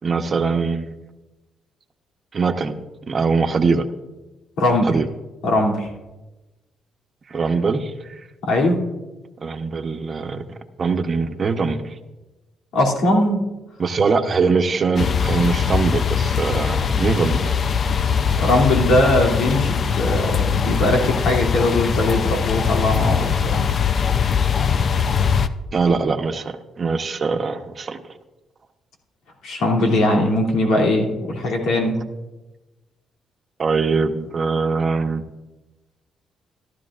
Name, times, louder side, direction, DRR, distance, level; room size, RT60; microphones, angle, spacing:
voice 1, 0.0-0.9 2.3-2.8 3.1-3.8 4.8-5.1 7.3-8.2 9.4-11.9 13.8-17.5 25.7-28.0 33.6-35.2, right 4 dB, 40° right, 7 dB, 1.0 m, -22 dB
voice 2, 4.6-4.9 5.4-5.9 8.4-8.8 12.7-13.4 18.4-23.7 29.4-32.0, left 1 dB, 85° left, -1 dB, 2.8 m, -20 dB
sound 1, 15.0-25.5, left 7 dB, 50° left, 0.6 m, -21 dB
15.0 x 12.5 x 2.5 m, 1.1 s
cardioid pair, 90°, 0 cm